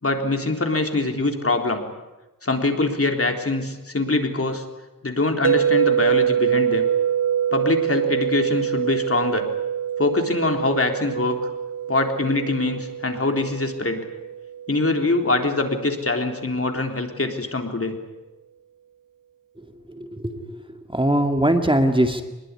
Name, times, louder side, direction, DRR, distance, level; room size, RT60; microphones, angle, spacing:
voice 1, 0.0-1.8 2.4-4.6 5.0-6.8 7.5-9.5 10.0-11.4 11.9-14.0 14.7-17.9, left 2 dB, 45° left, 4 dB, 3.8 m, -23 dB
sound 1, 5.4-15.5, right 9 dB, 70° right, 1.6 m, -25 dB
voice 2, 20.0-20.5 20.9-22.2, right 1 dB, 15° right, 5 dB, 2.2 m, -20 dB
25.0 x 21.0 x 9.8 m, 1.0 s
wide cardioid pair, 85°, 33 cm